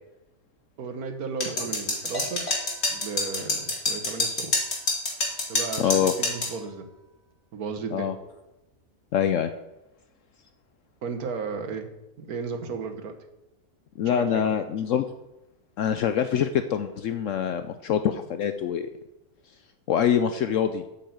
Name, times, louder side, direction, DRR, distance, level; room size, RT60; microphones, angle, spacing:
voice 1, 0.8-4.5 5.5-6.8 7.5-8.1 11.0-11.9 12.2-13.1 14.0-14.5, right 5 dB, 80° right, 5 dB, 1.6 m, -34 dB
sound 1, 1.4-6.5, left 2 dB, 45° left, 2.5 m, -27 dB
voice 2, 5.8-6.1 7.9-8.1 9.1-9.5 14.0-15.1 15.8-18.9 19.9-20.8, left 8 dB, 70° left, 9 dB, 0.9 m, -24 dB
8.5 x 5.6 x 7.8 m, 0.95 s
omnidirectional pair, 1.6 m